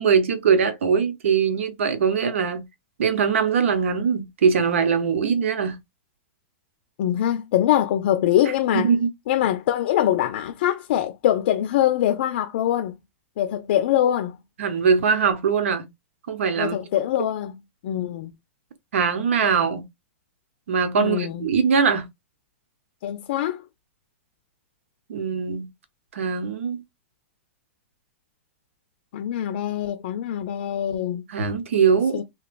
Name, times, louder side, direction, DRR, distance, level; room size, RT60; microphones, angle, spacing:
voice 1, 0.0-2.6 3.0-5.8 8.7-9.1 14.6-15.8 16.3-16.8 18.9-19.8 20.7-22.1 25.1-25.7 26.1-26.8 31.3-32.2, right 6 dB, 80° right, 0.9 m, -21 dB
voice 2, 7.0-8.9 9.3-12.9 13.4-14.4 16.6-17.5 17.8-18.3 21.0-21.5 23.0-23.6 29.1-31.2 32.1-32.2, left 11 dB, 60° left, 0.5 m, -23 dB
3.0 x 2.8 x 2.5 m
hypercardioid pair, 145°, 7 cm